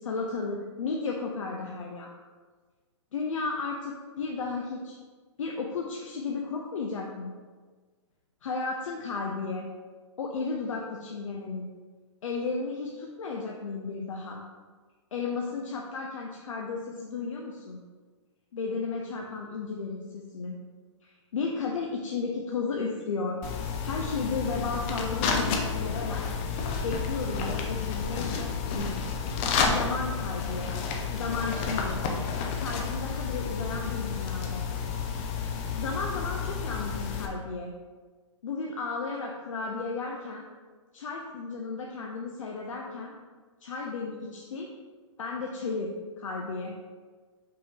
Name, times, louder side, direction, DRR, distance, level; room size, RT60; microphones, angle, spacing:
voice 1, 0.0-2.1 3.1-5.0 5.4-7.3 8.4-9.7 10.2-11.7 12.2-14.4 15.1-17.8 18.5-20.6 21.0-23.4 23.8-26.2 26.8-29.0 29.7-30.7 31.1-32.0 32.6-34.6 35.8-37.7 38.4-40.5 40.9-43.1 43.6-44.7 45.2-46.7, left 4 dB, 90° left, -1 dB, 0.6 m, -34 dB
sound 1, 23.4-37.3, left 5 dB, 25° left, 0.4 m, -31 dB
5.1 x 2.9 x 3.6 m, 1.4 s
hypercardioid pair, 155°, 16 cm